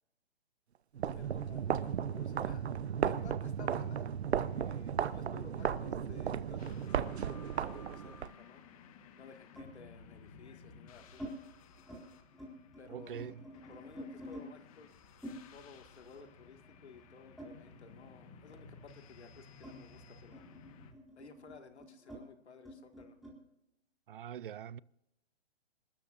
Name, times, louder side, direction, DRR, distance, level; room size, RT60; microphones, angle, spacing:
sound 1, 0.9-8.3, right 8 dB, 75° right, 0.9 m, -35 dB
voice 1, 1.0-2.7 3.0-11.2 12.8-13.3 13.7-14.9 15.5-20.5 21.2-23.2, left 5 dB, 90° left, 2.1 m, -55 dB
sound 2, 6.6-20.9, left 5 dB, 35° left, 1.5 m, -57 dB
sound 3, 8.2-8.3 9.6-9.8 10.5-11.3 11.7-12.0 12.3-14.5 15.2-18.1 18.4-23.4, equal, ahead, 4.1 m, -50 dB
voice 2, 12.9-13.4 24.1-24.8, right 9 dB, 55° right, 0.5 m, -43 dB
28.0 x 13.0 x 2.6 m
hypercardioid pair, 155°, 32 cm